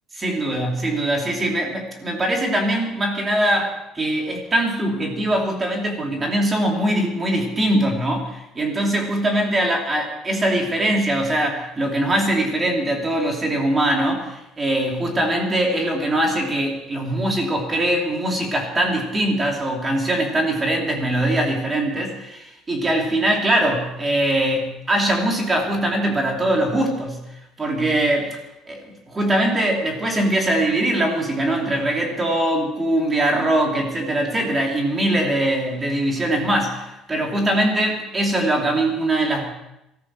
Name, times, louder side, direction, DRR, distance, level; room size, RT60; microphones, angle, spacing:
voice 1, 0.2-27.2 27.6-28.4 28.7-39.5, right 1 dB, 15° right, 1 dB, 2.8 m, -22 dB
22.0 x 14.0 x 4.6 m, 0.87 s
cardioid pair, 175°, 0 cm